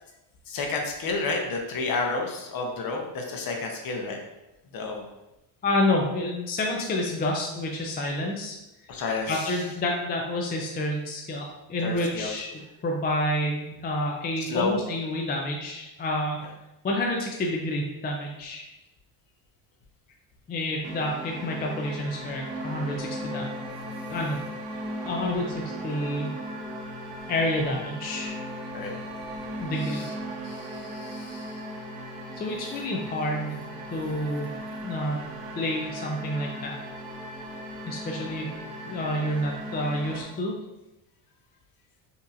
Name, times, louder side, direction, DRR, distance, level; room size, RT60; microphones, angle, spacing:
voice 1, 0.5-4.2 4.7-5.0 8.9-9.6 11.8-12.4 14.4-14.8 28.7-29.0 29.8-30.1 30.4-31.6, left 3 dB, 50° left, 2 dB, 0.9 m, -31 dB
voice 2, 5.6-8.6 9.3-16.4 16.8-18.7 20.5-23.5 24.1-24.4 25.0-26.4 27.3-28.4 29.6-30.0 32.4-33.6 33.9-34.5 34.8-36.7 37.9-38.5 38.9-40.5, left 1 dB, 20° left, 0 dB, 0.4 m, -29 dB
sound 1, 20.8-40.2, equal, 70° right, 0.9 m, -37 dB
5.5 x 2.9 x 2.5 m, 0.96 s
cardioid pair, 125°, 46 cm